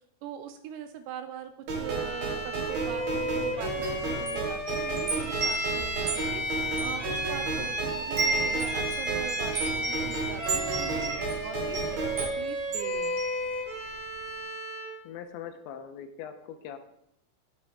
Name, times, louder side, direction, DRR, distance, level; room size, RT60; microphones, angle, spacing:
voice 1, 0.2-6.4 6.8-11.0 11.4-11.8 12.2-13.2, right 8 dB, 80° right, 8 dB, 2.6 m, -41 dB
sound 1, 1.7-12.2, right 4 dB, 65° right, 3.4 m, -33 dB
Bowed string instrument, 1.8-15.0, equal, 30° right, 3.3 m, -34 dB
Wind chime, 3.7-7.7 8.0-13.9, right 3 dB, 45° right, 3.5 m, -34 dB
voice 2, 10.7-11.2 15.0-16.8, left 8 dB, 85° left, 7 dB, 3.0 m, -41 dB
10.5 x 8.8 x 3.6 m, 0.77 s
omnidirectional pair, 5.3 m